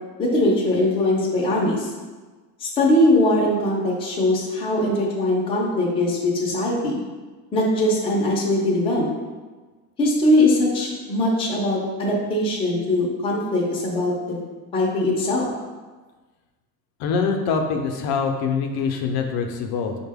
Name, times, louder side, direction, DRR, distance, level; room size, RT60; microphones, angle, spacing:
voice 1, 0.2-1.9 2.6-7.0 7.5-9.1 10.0-14.4 14.7-15.5, left 1 dB, 15° left, -4 dB, 0.4 m, -21 dB
voice 2, 17.0-20.0, left 5 dB, 70° left, 3 dB, 0.5 m, -24 dB
5.2 x 2.2 x 3.4 m, 1.3 s
cardioid pair, 180°, 39 cm